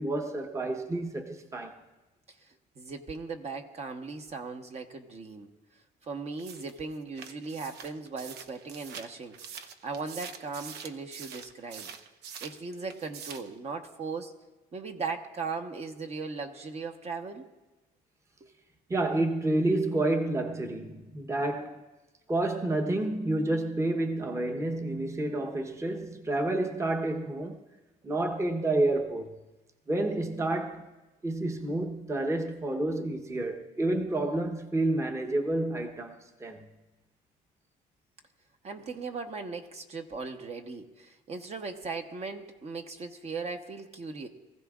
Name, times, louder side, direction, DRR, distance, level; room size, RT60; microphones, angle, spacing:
voice 1, 0.0-1.8 18.9-21.8 22.3-27.6 28.0-29.4 29.9-30.9 31.2-36.1 36.4-36.7, right 2 dB, 15° right, 1.0 m, -29 dB
voice 2, 2.8-5.5 6.0-11.9 12.4-14.3 14.7-17.5 18.4-18.5 38.6-44.3, right 4 dB, 40° right, 1.1 m, -38 dB
sound 1, 6.4-12.6 12.9-13.5, right 7 dB, 85° right, 0.8 m, -45 dB
23.5 x 15.0 x 2.5 m
cardioid pair, 110°, 17 cm